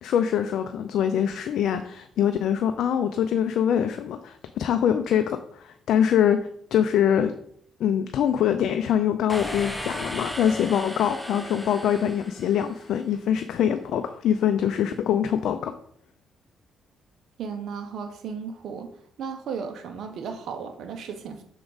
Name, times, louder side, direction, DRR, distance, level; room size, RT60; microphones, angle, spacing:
voice 1, 0.0-7.3 7.8-15.7, left 9 dB, 75° left, 8 dB, 0.4 m, -24 dB
sound 1, 9.3-13.1, left 1 dB, ahead, 0.8 m, -36 dB
voice 2, 17.4-18.9 19.2-21.4, right 6 dB, 70° right, 5 dB, 0.8 m, -35 dB
6.2 x 4.6 x 3.9 m, 0.64 s
cardioid pair, 90°, 0 cm